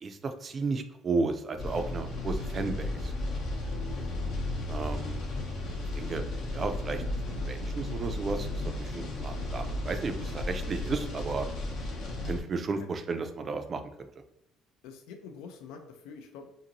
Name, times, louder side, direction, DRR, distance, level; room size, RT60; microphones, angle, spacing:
voice 1, 0.0-3.1 4.7-5.2 5.9-6.2 6.5-11.5 12.2-14.1, right 4 dB, 30° right, 8 dB, 0.3 m, -33 dB
sound 1, 1.6-12.4, left 2 dB, 65° left, 0.7 m, -34 dB
voice 2, 3.8-4.3 12.8-12.9 14.8-16.6, left 6 dB, 85° left, 5 dB, 0.4 m, -47 dB
2.6 x 2.6 x 2.9 m, 0.81 s
cardioid pair, 125°, 0 cm